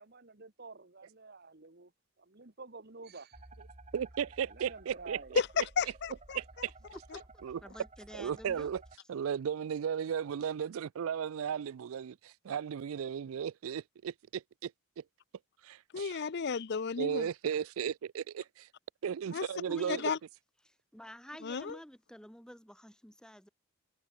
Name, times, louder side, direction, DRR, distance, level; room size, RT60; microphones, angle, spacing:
voice 1, 0.0-1.9 2.2-3.4 4.5-5.4, right 3 dB, 45° right, 1.7 m, -49 dB
sound 1, 3.3-8.9, right 2 dB, 30° right, 1.9 m, -54 dB
voice 2, 3.9-5.4 6.3-6.7 7.4-7.6 8.1-8.8 9.1-14.7 15.0-15.1 15.6-16.2 17.0-18.7 19.0-20.0, right 8 dB, 70° right, 0.4 m, -35 dB
voice 3, 5.4-6.4 15.9-17.3 19.3-19.5 19.9-20.2 21.4-21.8, left 6 dB, 50° left, 0.5 m, -33 dB
voice 4, 7.6-8.7 19.7-20.1 20.6-23.5, equal, 5° left, 2.8 m, -49 dB
head